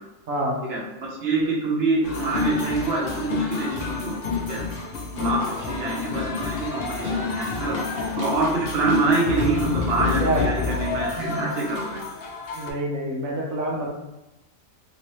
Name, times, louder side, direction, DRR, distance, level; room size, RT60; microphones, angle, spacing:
voice 1, 0.3-0.6 10.2-10.4 12.5-13.9, right 1 dB, 80° right, -2 dB, 1.1 m, -26 dB
voice 2, 1.2-4.1 4.5-4.6 5.1-7.8 8.2-12.0, right 3 dB, 55° right, -3 dB, 1.1 m, -25 dB
sound 1, 2.0-12.7, left 4 dB, 60° left, 0.7 m, -29 dB
3.2 x 3.0 x 3.0 m, 0.97 s
omnidirectional pair, 1.4 m